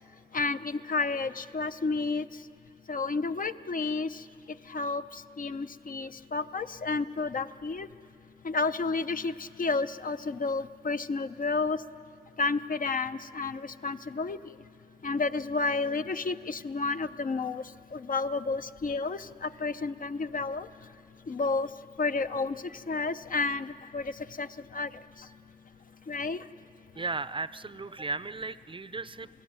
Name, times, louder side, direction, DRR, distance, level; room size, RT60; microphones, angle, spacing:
voice 1, 0.3-2.2 2.9-4.1 4.7-5.0 5.4-7.9 8.4-9.3 9.6-11.8 12.4-14.4 15.0-17.6 17.9-20.7 21.3-21.7 22.0-22.6 22.9-24.0 24.4-24.5 24.7-24.9 26.1-26.4, left 3 dB, 55° left, 10 dB, 0.7 m, -30 dB
voice 2, 26.9-29.3, right 3 dB, 30° right, 15 dB, 0.5 m, -35 dB
28.5 x 18.0 x 9.0 m, 2.4 s
cardioid pair, 75°, 17 cm